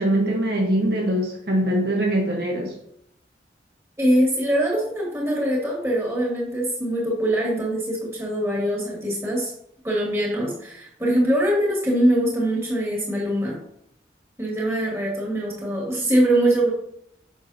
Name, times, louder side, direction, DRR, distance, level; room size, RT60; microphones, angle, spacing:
voice 1, 0.0-2.8, right 1 dB, 65° right, -1 dB, 1.5 m, -22 dB
voice 2, 4.0-9.5 9.8-13.6 14.4-16.7, right 1 dB, 15° right, -5 dB, 2.9 m, -23 dB
8.8 x 6.6 x 3.0 m, 0.73 s
head